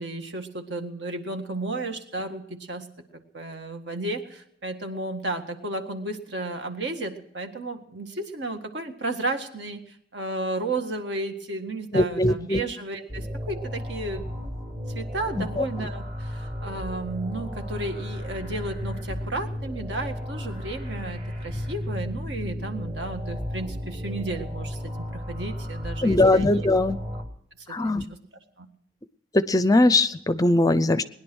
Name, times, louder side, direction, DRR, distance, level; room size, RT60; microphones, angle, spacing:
voice 1, 0.0-2.9 3.1-14.2 14.9-26.5 27.7-28.1 28.6-28.7, right 2 dB, 65° right, 5 dB, 1.8 m, -33 dB
voice 2, 11.9-12.6 15.4-15.6 26.0-27.0 27.7-28.0 29.3-31.0, left 2 dB, 20° left, 14 dB, 0.5 m, -20 dB
sound 1, 13.1-27.2, left 1 dB, 40° right, 3.1 m, -34 dB
20.5 x 10.5 x 6.2 m, 0.73 s
head